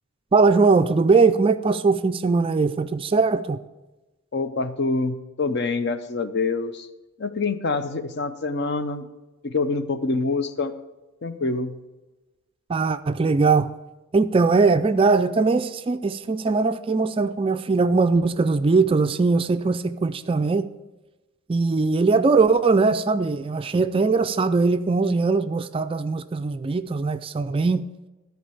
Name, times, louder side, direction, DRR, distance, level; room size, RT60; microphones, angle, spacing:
voice 1, 0.3-3.6 12.7-13.7 14.1-20.7 21.5-27.8, right 4 dB, 25° right, 0.3 m, -20 dB
voice 2, 4.3-6.9 7.2-9.1 9.4-10.7 11.2-11.8, left 3 dB, 55° left, 0.6 m, -26 dB
13.5 x 4.6 x 6.9 m
head